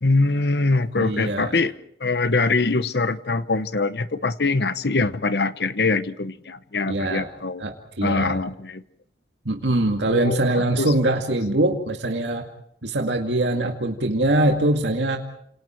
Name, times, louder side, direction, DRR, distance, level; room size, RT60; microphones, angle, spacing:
voice 1, 0.0-1.7 2.0-7.6 8.0-8.8 10.1-10.9, left 3 dB, 65° left, 13 dB, 1.0 m, -23 dB
voice 2, 1.0-1.6 6.9-7.3 7.6-8.4 9.5-12.4 12.8-15.2, right 1 dB, 85° right, 3 dB, 2.2 m, -23 dB
29.5 x 27.5 x 4.5 m, 0.71 s
head